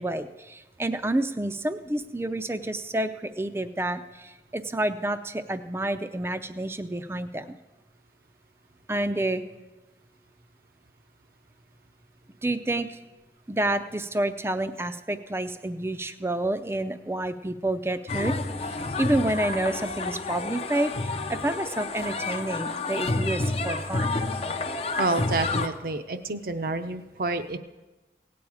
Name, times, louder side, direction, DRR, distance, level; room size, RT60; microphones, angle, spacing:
voice 1, 0.0-7.6 8.9-9.4 12.4-13.0 13.5-18.3 19.0-24.2, right 1 dB, 15° right, 11 dB, 0.5 m, -29 dB
sound 1, 18.1-25.7, left 3 dB, 35° left, 0.6 m, -29 dB
voice 2, 25.0-27.6, right 3 dB, 55° right, 9 dB, 0.7 m, -29 dB
17.5 x 8.6 x 4.8 m, 1.1 s
head